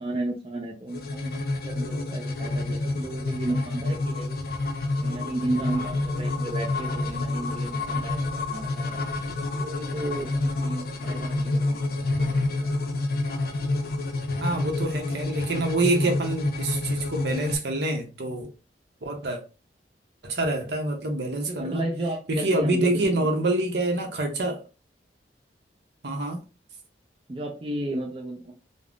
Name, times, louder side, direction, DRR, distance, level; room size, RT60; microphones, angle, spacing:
voice 1, 0.0-4.4 5.0-9.1 9.6-12.7 21.5-23.3 27.3-28.5, right 1 dB, 30° right, 0.5 m, -33 dB
sound 1, 0.9-17.6, left 2 dB, 55° left, 0.4 m, -28 dB
voice 2, 14.4-18.5 19.0-19.4 20.2-21.8 22.3-24.6 26.0-26.4, right 2 dB, 70° right, 0.7 m, -26 dB
3.5 x 2.0 x 2.4 m
head